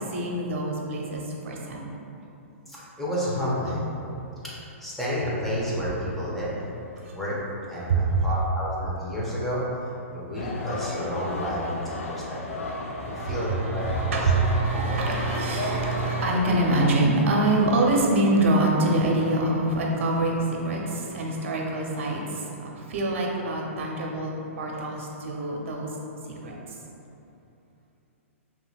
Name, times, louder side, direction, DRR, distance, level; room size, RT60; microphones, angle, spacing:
voice 1, 0.1-1.9 3.7-3.8 7.0-7.1 7.9-8.2 12.9-22.4 22.8-25.9 26.4-26.6, right 2 dB, 60° right, -1 dB, 0.8 m, -25 dB
voice 2, 2.7-3.9 4.4-4.5 4.8-6.6 7.1-7.4 7.7-9.6 10.1-12.7 13.1-14.3 14.7-14.9, equal, ahead, -8 dB, 1.1 m, -30 dB
sound 1, 10.4-16.9, left 2 dB, 70° left, 0.6 m, -33 dB
5.5 x 3.1 x 2.4 m, 2.8 s
hypercardioid pair, 120°, 8 cm